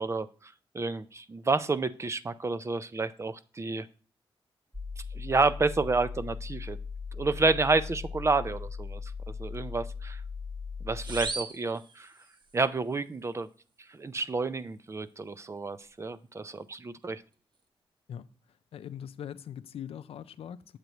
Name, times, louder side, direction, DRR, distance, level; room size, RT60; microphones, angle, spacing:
voice 1, 0.0-3.9 5.1-6.8 7.1-9.1 9.4-10.2 10.8-12.1 12.5-13.5 13.9-17.2, right 3 dB, 30° right, 0.4 m, -30 dB
sound 1, 4.7-11.3, left 5 dB, 5° right, 0.9 m, -39 dB
sound 2, 11.0-12.6, right 3 dB, 50° right, 0.9 m, -38 dB
voice 2, 18.7-20.8, left 9 dB, 80° left, 0.4 m, -41 dB
8.1 x 7.7 x 3.0 m
cardioid pair, 85°, 10 cm